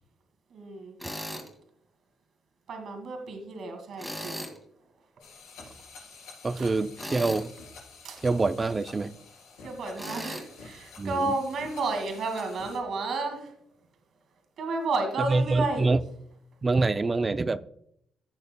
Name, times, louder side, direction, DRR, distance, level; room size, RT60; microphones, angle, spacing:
voice 1, 0.5-1.0 2.7-4.5 6.6-7.2 8.0-8.2 9.6-13.5 14.6-15.9, right 3 dB, 65° right, 4 dB, 2.1 m, -32 dB
Tools, 1.0-1.5 4.0-4.6 7.0-7.5 10.0-10.4, equal, 5° left, 2.2 m, -37 dB
sound 1, 5.2-12.8, left 4 dB, 90° left, 3.6 m, -49 dB
voice 2, 6.4-7.5 8.2-9.1 11.0-11.3 15.2-16.0 16.6-17.6, right 3 dB, 25° right, 13 dB, 0.5 m, -25 dB
15.5 x 6.6 x 2.2 m, 0.70 s
cardioid pair, 90°, 0 cm